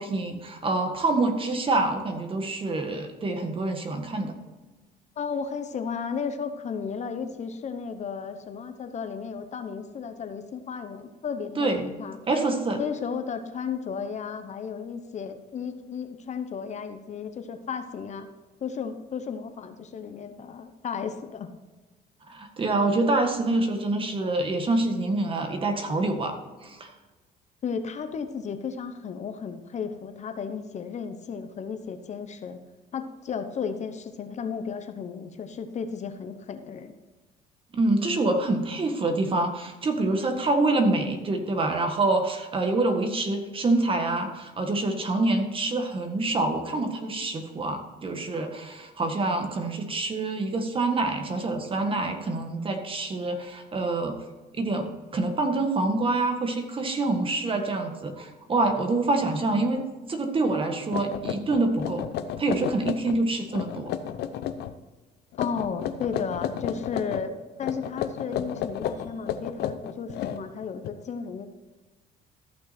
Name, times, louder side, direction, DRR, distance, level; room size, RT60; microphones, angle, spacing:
voice 1, 0.0-4.3 11.6-11.9 12.3-12.8 22.3-26.4 26.6-26.9 37.7-54.2 54.5-54.9 55.1-62.1 62.4-63.9, right 2 dB, 30° right, 5 dB, 1.7 m, -26 dB
voice 2, 5.2-12.2 12.8-18.3 18.6-21.5 27.6-32.6 32.9-37.0 65.4-71.5, left 6 dB, 45° left, 8 dB, 1.0 m, -34 dB
sound 1, 60.5-60.6 60.9-63.2 63.5-64.7 65.3-67.3 67.6-70.9, left 9 dB, 75° left, 0.7 m, -32 dB
14.0 x 6.1 x 4.4 m, 1.2 s
cardioid pair, 110°, 17 cm